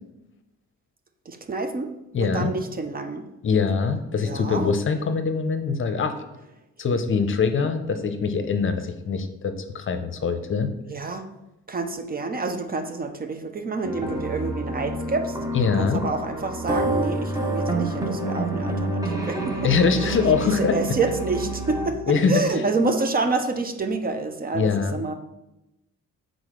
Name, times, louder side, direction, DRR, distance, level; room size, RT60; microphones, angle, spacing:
voice 1, 1.3-1.9 2.2-3.3 4.2-4.7 10.9-11.3 11.7-15.4 15.8-19.4 20.0-20.1 20.4-22.0 22.3-25.1, right 3 dB, 30° right, 7 dB, 0.6 m, -28 dB
voice 2, 2.1-2.5 3.4-6.2 6.8-10.7 15.5-16.0 19.6-20.8 22.1-22.4 24.5-25.0, left 5 dB, 40° left, 8 dB, 0.7 m, -23 dB
sound 1, 13.8-21.9, right 2 dB, 10° right, 1.0 m, -28 dB
4.8 x 4.0 x 5.0 m, 0.92 s
cardioid pair, 90°, 30 cm